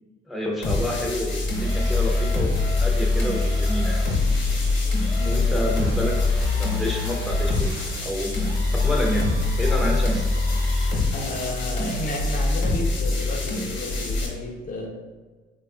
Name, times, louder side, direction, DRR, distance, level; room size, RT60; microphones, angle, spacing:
voice 1, 0.3-4.0 5.3-7.7 8.0-8.3 8.8-9.3 9.6-10.3, left 1 dB, ahead, -1 dB, 0.6 m, -29 dB
sound 1, 0.6-14.3, left 2 dB, 70° left, 0.9 m, -23 dB
sound 2, 1.6-10.9, right 2 dB, 85° right, 0.8 m, -44 dB
voice 2, 5.2-5.5 11.1-14.9, left 2 dB, 45° left, 0 dB, 0.5 m, -32 dB
3.0 x 2.3 x 3.5 m, 1.4 s
cardioid pair, 90°, 20 cm